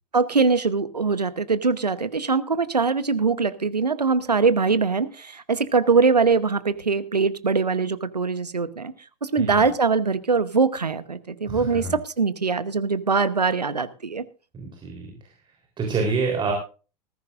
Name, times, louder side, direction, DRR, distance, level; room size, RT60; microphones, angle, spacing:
voice 1, 0.1-8.9 9.2-14.2, right 4 dB, 80° right, 14 dB, 1.0 m, -22 dB
voice 2, 11.5-11.9 14.5-15.1 15.8-16.5, right 4 dB, 25° right, 2 dB, 3.7 m, -27 dB
19.5 x 15.0 x 2.5 m, 0.35 s
figure-of-eight pair, 85°, 20 cm